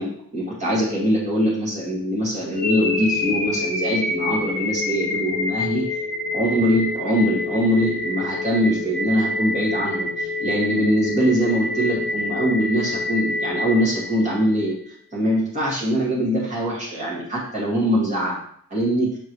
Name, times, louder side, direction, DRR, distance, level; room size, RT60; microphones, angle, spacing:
voice 1, 0.0-5.9 6.3-14.7 15.1-18.4 18.7-19.1, equal, 35° right, -4 dB, 2.0 m, -22 dB
sound 1, 2.5-14.6, left 2 dB, 10° left, 1.0 m, -27 dB
6.6 x 4.5 x 3.1 m, 0.64 s
head